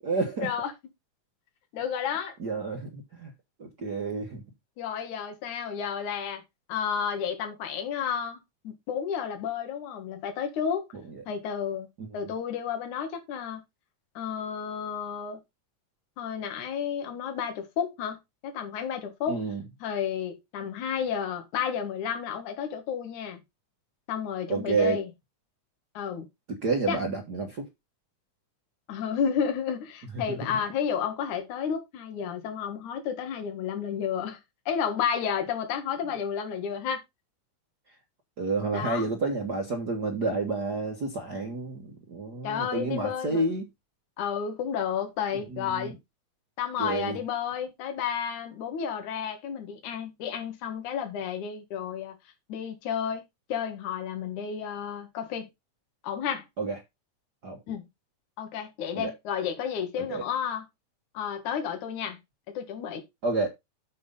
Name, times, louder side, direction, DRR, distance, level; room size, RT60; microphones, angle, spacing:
voice 1, 0.0-0.5 2.4-3.3 3.6-4.4 12.0-12.1 19.3-19.6 24.5-25.0 26.5-27.6 30.1-30.5 38.4-43.7 45.5-45.9 46.8-47.2 56.6-56.8 57.4-57.6 58.9-59.1 60.0-60.2 63.2-63.5, right 3 dB, 45° right, 1.4 m, -30 dB
voice 2, 1.7-2.3 4.8-6.4 6.7-8.4 8.6-10.9 11.3-11.9 12.1-13.6 14.1-15.4 16.2-19.4 19.8-23.4 24.1-25.1 25.9-26.3 26.9-27.0 28.9-34.4 34.7-37.0 38.7-39.0 42.4-43.4 44.2-46.0 46.6-52.2 52.5-53.2 53.5-55.5 56.0-56.4 57.7-57.9 58.4-60.7 61.1-62.2 62.5-63.0, left 7 dB, 75° left, 3.1 m, -31 dB
7.8 x 5.7 x 5.5 m
omnidirectional pair, 3.6 m